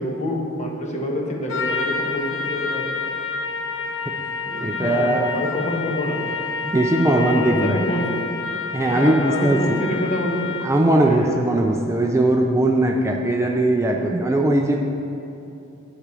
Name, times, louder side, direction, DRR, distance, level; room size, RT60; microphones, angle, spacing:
voice 1, 0.0-2.9 4.5-6.2 7.1-8.2 8.8-10.5 11.0-11.4, left 1 dB, 35° left, -1 dB, 1.3 m, -27 dB
Trumpet, 1.5-10.8, left 4 dB, 70° left, 0.7 m, -29 dB
voice 2, 4.6-5.4 6.6-7.9 8.7-9.8 10.6-14.8, right 1 dB, 15° right, 1 dB, 0.4 m, -19 dB
10.0 x 4.9 x 6.9 m, 2.9 s
head